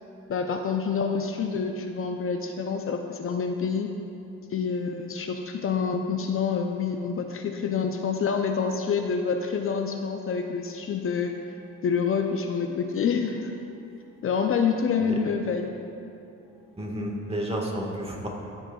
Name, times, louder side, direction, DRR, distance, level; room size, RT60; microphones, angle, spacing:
voice 1, 0.3-3.9 4.5-11.4 11.8-13.5 14.2-15.8, left 6 dB, 45° left, 4 dB, 0.5 m, -27 dB
voice 2, 16.8-18.3, right 1 dB, 20° right, -1 dB, 1.5 m, -31 dB
14.5 x 6.2 x 2.3 m, 2.8 s
cardioid pair, 90°, 30 cm